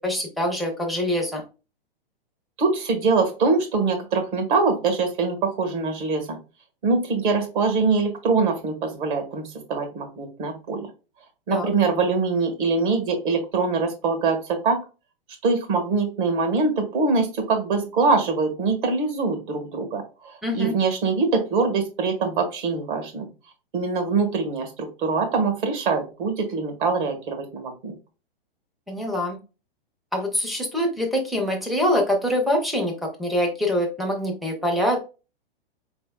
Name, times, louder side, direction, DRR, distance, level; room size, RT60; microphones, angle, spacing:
voice 1, 0.0-1.4 11.5-11.7 20.4-20.7 28.9-29.4 30.1-35.0, equal, ahead, -1 dB, 0.5 m, -24 dB
voice 2, 2.6-6.4 6.8-10.9 11.5-14.8 15.4-23.3 23.7-28.0, right 4 dB, 55° right, 4 dB, 1.6 m, -23 dB
4.7 x 3.4 x 2.2 m, 0.31 s
hypercardioid pair, 150°, 30 cm